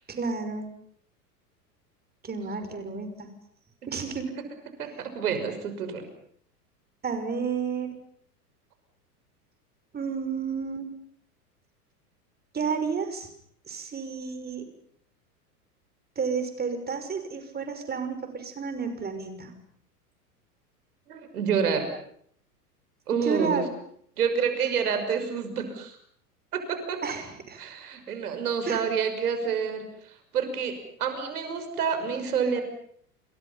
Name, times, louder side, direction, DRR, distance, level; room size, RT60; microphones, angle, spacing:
voice 1, 0.1-0.7 2.2-3.3 3.9-4.3 7.0-7.9 9.9-10.9 12.5-13.3 13.7-14.7 16.2-19.6 23.1-23.7 27.0-27.6 28.7-28.8, right 5 dB, 20° right, 8 dB, 5.9 m, -31 dB
voice 2, 4.8-6.0 21.1-21.9 23.1-23.6 24.2-26.0 26.5-27.0 27.6-32.6, right 6 dB, 70° right, 7 dB, 6.1 m, -28 dB
29.0 x 28.0 x 5.8 m, 0.66 s
figure-of-eight pair, 90°, 47 cm